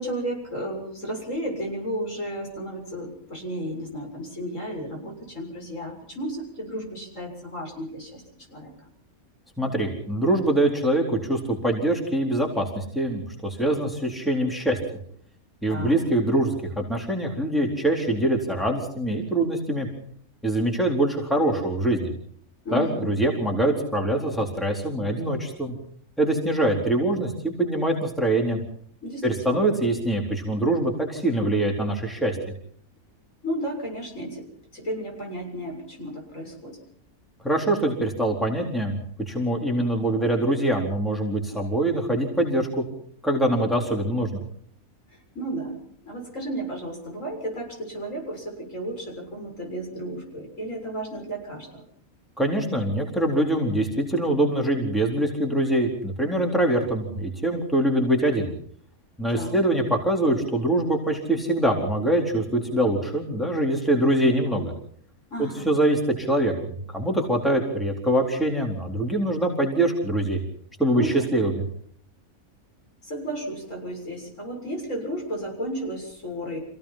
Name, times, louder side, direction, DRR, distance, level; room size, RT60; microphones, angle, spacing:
voice 1, 0.0-8.2 8.5-8.7 15.7-16.0 22.6-23.1 29.0-29.7 33.4-34.5 34.7-36.8 45.4-45.8 46.0-51.8 59.3-59.6 65.3-65.7 70.9-71.3 73.0-76.6, right 1 dB, 60° left, 1 dB, 7.3 m, -33 dB
voice 2, 9.6-14.8 15.6-19.9 20.4-22.1 22.7-25.7 26.2-28.6 29.2-32.4 37.4-39.0 39.3-42.8 43.2-44.4 52.4-58.5 59.2-64.7 65.4-70.4 70.8-71.5, right 1 dB, ahead, 0 dB, 4.0 m, -24 dB
27.5 x 17.0 x 5.9 m, 0.62 s
omnidirectional pair, 1.5 m